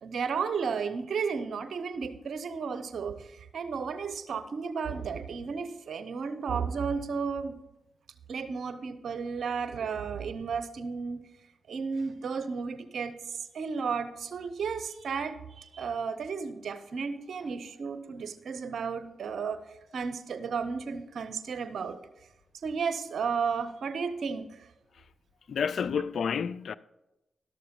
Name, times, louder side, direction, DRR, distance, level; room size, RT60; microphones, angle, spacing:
voice 1, 0.0-7.6 8.3-11.3 11.7-19.6 19.9-22.0 22.6-24.7, right 5 dB, 70° right, 0.7 m, -33 dB
voice 2, 25.5-26.7, left 6 dB, 70° left, 0.3 m, -29 dB
12.5 x 6.7 x 5.2 m
supercardioid pair, 40°, 0 cm